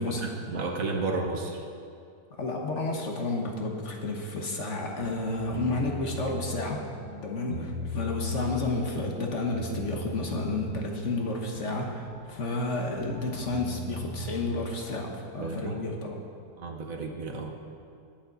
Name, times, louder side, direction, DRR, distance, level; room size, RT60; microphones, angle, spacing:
voice 1, 0.0-1.6 7.5-7.7 15.4-15.8 16.6-17.6, right 3 dB, 60° right, 2 dB, 1.4 m, -32 dB
voice 2, 2.3-6.8 7.2-16.2, left 2 dB, 50° left, 1 dB, 1.4 m, -31 dB
sound 1, 4.7-14.7, left 3 dB, 25° left, 1.2 m, -40 dB
19.5 x 7.2 x 4.0 m, 2.5 s
omnidirectional pair, 1.7 m